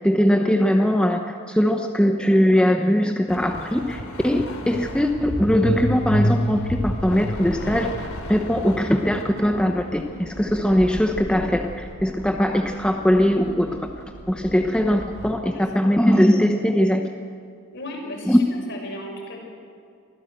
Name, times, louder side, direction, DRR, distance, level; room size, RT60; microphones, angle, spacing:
voice 1, 0.0-13.9 14.3-17.0 18.3-18.4, equal, 5° left, 3 dB, 0.9 m, -20 dB
sound 1, 3.3-15.4, equal, 85° left, 3.1 m, -31 dB
voice 2, 17.7-18.4 18.7-19.4, left 1 dB, 55° left, 0 dB, 6.1 m, -35 dB
24.5 x 15.5 x 7.9 m, 2.4 s
head